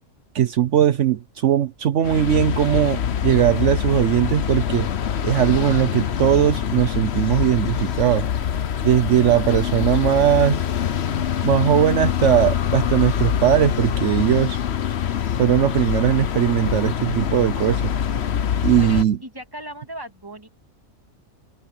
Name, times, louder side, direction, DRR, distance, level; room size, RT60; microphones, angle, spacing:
voice 1, 0.3-4.9 5.2-8.3 8.8-10.6 11.4-14.6 15.4-17.9 18.6-19.2, right 11 dB, 70° right, 1.1 m, -19 dB
sound 1, 2.0-19.0, left 9 dB, 60° left, 1.1 m, -24 dB
voice 2, 18.8-20.5, right 1 dB, 15° right, 2.8 m, -37 dB
omnidirectional pair, 1.3 m